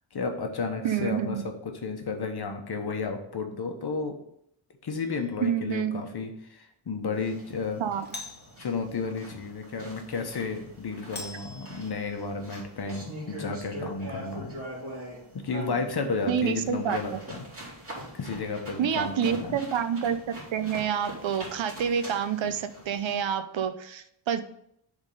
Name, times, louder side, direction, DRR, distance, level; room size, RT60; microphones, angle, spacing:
voice 1, 0.1-4.2 4.8-7.8 8.6-14.5 15.4-17.4 18.1-19.6, left 4 dB, 55° left, 4 dB, 1.1 m, -32 dB
voice 2, 0.8-1.5 5.4-6.0 7.8-8.1 16.3-17.2 18.8-24.4, right 8 dB, 70° right, 11 dB, 0.7 m, -28 dB
Doorbell, 5.0-5.5 8.0-8.6 11.1-12.2, left 3 dB, 20° left, 0.9 m, -43 dB
sound 1, 7.1-23.2, right 1 dB, 30° right, 2.6 m, -43 dB
7.2 x 3.7 x 5.3 m, 0.73 s
wide cardioid pair, 130°, 48 cm